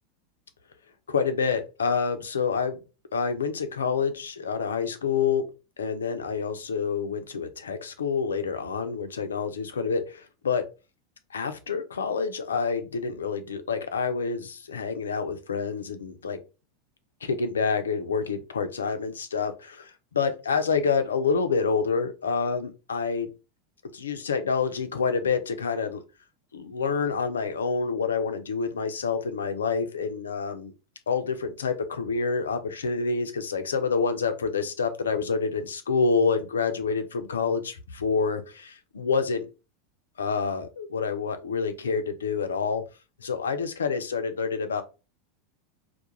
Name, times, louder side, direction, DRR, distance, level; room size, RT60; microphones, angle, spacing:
voice 1, 1.1-2.8 3.1-5.4 5.8-10.6 11.3-16.4 17.2-23.3 23.9-26.0 26.5-30.7 31.1-39.5 40.2-42.8 43.2-44.8, left 5 dB, 85° left, 9 dB, 0.4 m, -27 dB
2.3 x 2.1 x 2.9 m, 0.31 s
hypercardioid pair, 90°, 0 cm